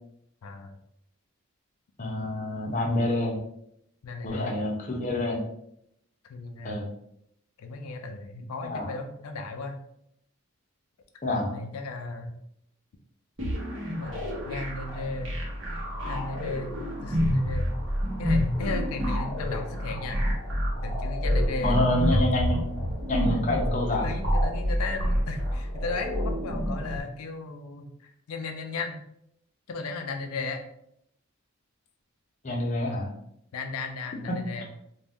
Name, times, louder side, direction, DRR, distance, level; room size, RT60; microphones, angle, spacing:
voice 1, 0.4-0.7 4.0-4.6 6.3-6.8 7.6-9.8 11.5-12.3 13.9-15.4 16.1-17.8 18.2-20.2 20.8-22.3 24.0-29.0 29.7-30.6 33.5-34.7, left 3 dB, 90° left, 4 dB, 0.4 m, -36 dB
voice 2, 2.0-3.4 4.2-5.5 6.6-6.9 8.6-8.9 11.2-11.5 21.6-22.7 23.1-24.1 32.4-33.1 34.3-34.4, left 1 dB, 35° left, -1 dB, 0.5 m, -27 dB
sound 1, 13.4-27.0, equal, 60° right, 0.9 m, -28 dB
2.5 x 2.1 x 3.4 m, 0.75 s
head